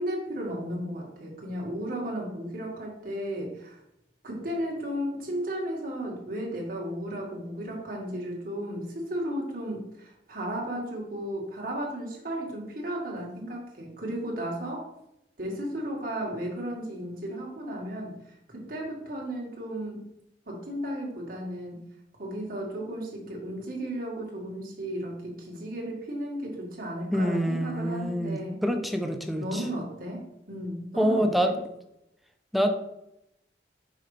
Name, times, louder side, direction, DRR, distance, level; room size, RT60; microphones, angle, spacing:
voice 1, 0.0-3.8 4.2-14.9 15.4-18.2 18.5-20.1 20.5-21.9 22.2-28.6 29.4-31.6, right 1 dB, 55° right, -2 dB, 1.8 m, -34 dB
voice 2, 27.1-29.6 31.0-31.5 32.5-32.7, equal, ahead, 4 dB, 0.5 m, -26 dB
5.7 x 5.1 x 3.2 m, 0.82 s
head